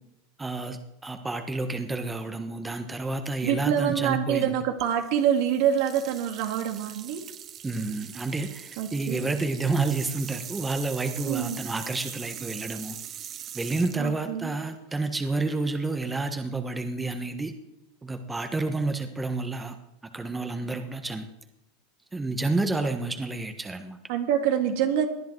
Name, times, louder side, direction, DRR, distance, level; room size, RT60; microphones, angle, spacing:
voice 1, 0.4-4.5 7.6-13.0 13.5-17.5 18.0-19.7 20.1-21.2 22.1-24.0, right 3 dB, 15° right, 7 dB, 1.4 m, -30 dB
voice 2, 3.4-7.2 8.8-9.3 11.3-11.6 14.0-14.5 24.1-25.1, right 9 dB, 65° right, 5 dB, 2.2 m, -26 dB
sound 1, 4.8-15.0, right 10 dB, 40° right, 0.9 m, -42 dB
19.0 x 10.5 x 4.7 m, 0.89 s
hypercardioid pair, 105°, 0 cm